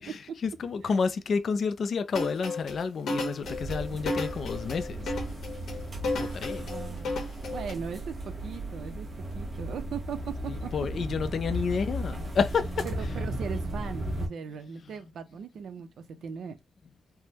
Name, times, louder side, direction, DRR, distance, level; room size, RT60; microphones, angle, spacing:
voice 1, 0.0-5.1 6.2-6.7 10.5-12.9, left 5 dB, 50° left, 0.3 m, -30 dB
sound 1, 2.1-7.7, left 2 dB, 75° left, 1.0 m, -33 dB
sound 2, 3.4-14.3, right 1 dB, 25° right, 0.9 m, -36 dB
voice 2, 6.6-9.1 9.3-10.7 12.8-16.6, right 6 dB, 70° right, 0.6 m, -39 dB
3.4 x 2.1 x 2.8 m
wide cardioid pair, 175°, 0 cm